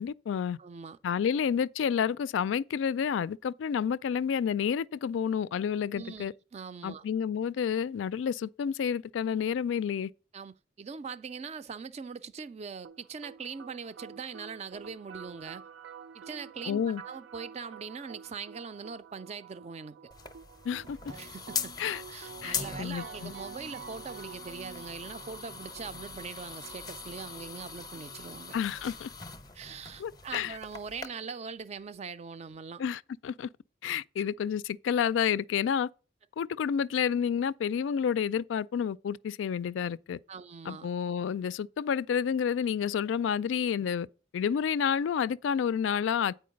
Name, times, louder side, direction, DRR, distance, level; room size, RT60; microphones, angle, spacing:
voice 1, 0.0-0.6 1.0-6.3 6.8-10.1 16.7-17.0 20.6-21.0 21.8-22.0 22.4-23.3 28.5-29.1 30.0-30.6 32.8-33.5 33.8-35.9 36.4-40.2 40.7-44.1 44.3-46.3, left 7 dB, 85° left, 0.3 m, -30 dB
voice 2, 0.6-1.0 5.9-6.3 6.5-7.0 10.3-15.6 16.1-20.0 21.1-21.7 22.1-28.6 29.5-32.8 40.3-40.9, right 5 dB, 35° right, 0.3 m, -42 dB
sound 1, 12.8-28.8, right 6 dB, 90° right, 0.5 m, -49 dB
sound 2, 20.1-31.1, left 6 dB, 20° left, 0.6 m, -41 dB
8.5 x 4.6 x 5.1 m
head